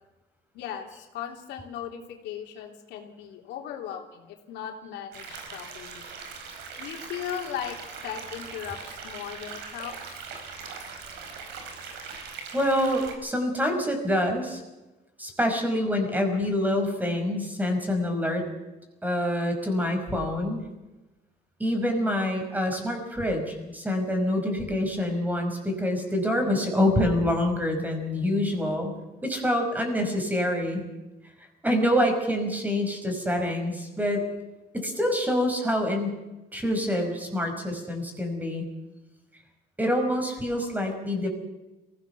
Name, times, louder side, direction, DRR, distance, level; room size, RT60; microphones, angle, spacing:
voice 1, 0.5-6.1 6.8-7.8 8.0-10.2, left 9 dB, 85° left, 3 dB, 3.3 m, -37 dB
sound 1, 5.1-13.1, right 5 dB, 90° right, 4.8 m, -40 dB
voice 2, 12.5-14.6 15.2-18.4 19.0-20.6 21.6-28.9 29.2-30.8 31.4-34.3 34.7-36.2 36.5-38.7 39.8-41.3, left 1 dB, 10° right, 5 dB, 5.4 m, -26 dB
22.5 x 16.5 x 7.1 m, 1.1 s
cardioid pair, 110°, 17 cm